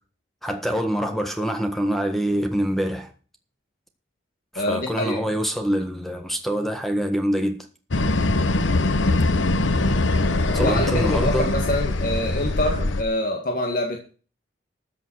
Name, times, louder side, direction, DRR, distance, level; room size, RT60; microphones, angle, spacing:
voice 1, 0.4-3.1 4.5-7.6 10.5-11.5, equal, ahead, 1.5 m, -25 dB
voice 2, 4.6-5.2 10.6-14.2, left 1 dB, 45° left, 2.1 m, -25 dB
sound 1, 7.9-13.0, left 2 dB, 85° left, 1.0 m, -22 dB
14.0 x 7.2 x 6.5 m
head